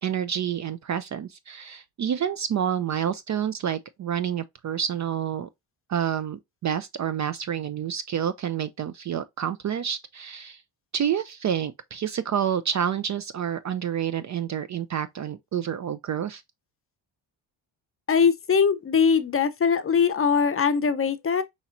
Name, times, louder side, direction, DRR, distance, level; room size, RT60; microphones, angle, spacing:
voice 1, 0.0-5.5 5.9-10.6 10.9-16.4, right 9 dB, 40° right, 0.4 m, -28 dB
voice 2, 18.1-21.4, left 6 dB, 30° left, 0.6 m, -21 dB
5.5 x 3.0 x 2.5 m
cardioid pair, 80°, 47 cm